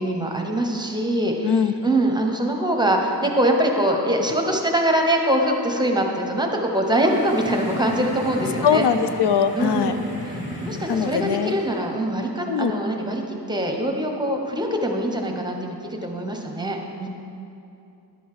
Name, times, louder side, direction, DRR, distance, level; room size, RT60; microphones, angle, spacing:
voice 1, 0.0-8.9 9.6-10.0 10.6-13.2 13.5-15.7 16.0-17.1, right 1 dB, 10° right, 2 dB, 0.8 m, -23 dB
sound 1, 6.7-11.8, left 1 dB, 30° left, 2.3 m, -35 dB
voice 2, 8.6-10.0 10.9-11.5 12.5-12.8, left 7 dB, 80° left, 10 dB, 0.5 m, -21 dB
11.0 x 7.9 x 4.7 m, 2.6 s
wide cardioid pair, 160°, 41 cm